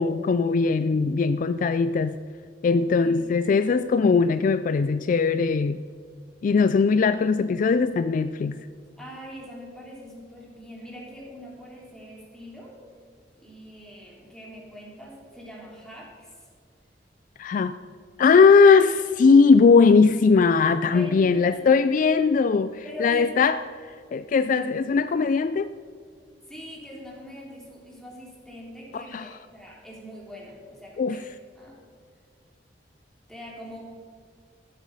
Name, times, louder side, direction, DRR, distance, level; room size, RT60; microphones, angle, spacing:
voice 1, 0.0-2.2 2.6-5.8 6.4-8.6 17.4-17.7 18.2-23.6 24.1-25.7 28.9-29.3 31.0-31.2, left 5 dB, 50° left, 13 dB, 0.3 m, -19 dB
voice 2, 2.7-3.1 9.0-12.8 13.3-16.5 20.9-21.7 22.8-23.3 26.5-31.2 31.5-31.8 33.3-33.8, left 1 dB, 5° left, -3 dB, 3.1 m, -43 dB
14.0 x 8.0 x 5.4 m, 2.1 s
head